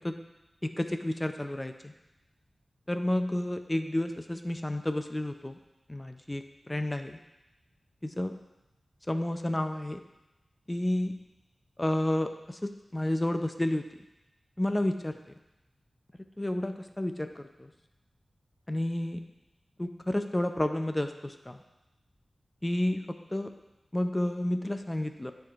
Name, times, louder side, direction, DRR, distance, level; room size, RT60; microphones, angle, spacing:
voice 1, 0.6-1.9 2.9-5.6 5.9-7.2 8.0-8.4 9.1-10.0 10.7-11.2 11.8-13.8 14.6-15.2 16.4-17.7 18.7-19.2 19.8-21.6 22.6-23.5 23.9-25.3, left 1 dB, 15° left, 7 dB, 0.4 m, -31 dB
11.5 x 4.5 x 2.4 m, 0.99 s
wide cardioid pair, 95°, 0 cm